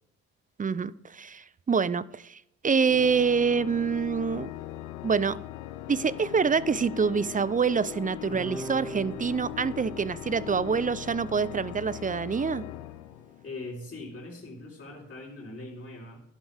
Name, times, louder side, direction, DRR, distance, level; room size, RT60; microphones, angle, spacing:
voice 1, 0.6-4.5 5.0-5.4 5.9-12.6, right 5 dB, 25° right, 0.6 m, -26 dB
Organ, 2.8-13.7, left 14 dB, 80° left, 0.8 m, -40 dB
Guitar, 8.3-12.9, right 2 dB, 5° right, 3.2 m, -43 dB
voice 2, 13.4-16.2, left 2 dB, 35° left, 3.9 m, -41 dB
11.5 x 11.0 x 3.5 m
hypercardioid pair, 50°, 33 cm